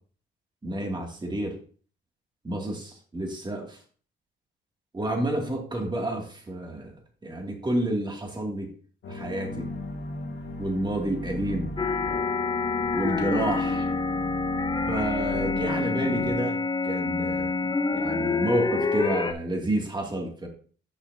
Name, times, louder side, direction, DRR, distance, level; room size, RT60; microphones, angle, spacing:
voice 1, 0.6-1.6 2.4-3.8 4.9-6.9 7.2-8.7 9.1-9.7 10.6-11.7 12.9-13.9 14.9-20.5, right 1 dB, 20° right, 1 dB, 2.5 m, -30 dB
sound 1, 9.0-16.3, left 2 dB, 70° left, 1.8 m, -36 dB
sound 2, 11.8-19.3, left 4 dB, 20° left, 0.8 m, -27 dB
10.5 x 5.8 x 2.8 m, 0.43 s
cardioid pair, 90°, 20 cm